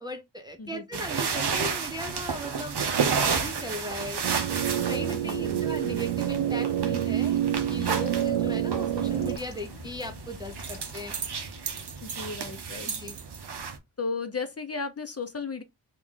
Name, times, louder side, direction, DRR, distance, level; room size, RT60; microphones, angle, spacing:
voice 1, 0.0-2.8 3.1-4.2 4.9-11.1 12.9-13.2, equal, 10° right, 0.6 m, -38 dB
voice 2, 0.6-1.1 5.0-5.7 8.5-8.6 12.0-12.9 14.0-15.6, left 4 dB, 30° left, 0.7 m, -35 dB
sound 1, 0.9-13.8, right 6 dB, 55° right, 0.8 m, -32 dB
sound 2, 4.2-9.4, right 10 dB, 90° right, 0.6 m, -27 dB
sound 3, 7.5-13.5, left 5 dB, 75° left, 0.8 m, -49 dB
3.1 x 2.5 x 3.6 m
cardioid pair, 55°, 49 cm